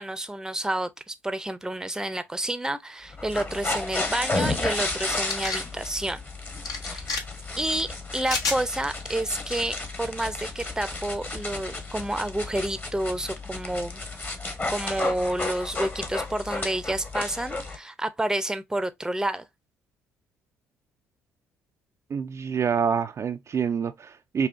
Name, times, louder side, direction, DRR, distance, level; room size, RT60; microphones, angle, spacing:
voice 1, 0.0-6.2 6.8-7.0 7.6-14.0 14.7-19.5, right 1 dB, 10° right, 0.7 m, -29 dB
sound 1, 3.1-17.8, left 2 dB, 30° left, 1.3 m, -32 dB
sound 2, 5.1-5.6 6.6-7.2 8.2-8.6, left 3 dB, 60° left, 1.2 m, -29 dB
voice 2, 22.1-24.5, right 7 dB, 45° right, 0.4 m, -27 dB
5.4 x 2.3 x 2.6 m
hypercardioid pair, 50°, 7 cm